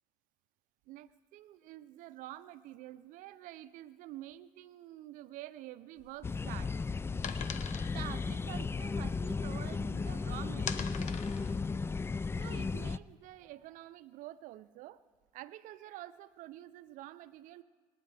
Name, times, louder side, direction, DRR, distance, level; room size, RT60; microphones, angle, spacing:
voice 1, 0.9-6.7 7.9-11.1 12.4-15.0 15.3-17.6, right 15 dB, 70° right, 15 dB, 0.5 m, -48 dB
sound 1, 6.0-10.0 10.3-13.0, left 8 dB, 60° left, 1.0 m, -44 dB
sound 2, 6.2-13.0, left 4 dB, 15° left, 0.3 m, -35 dB
26.5 x 9.8 x 3.4 m, 1.5 s
supercardioid pair, 75°, 14 cm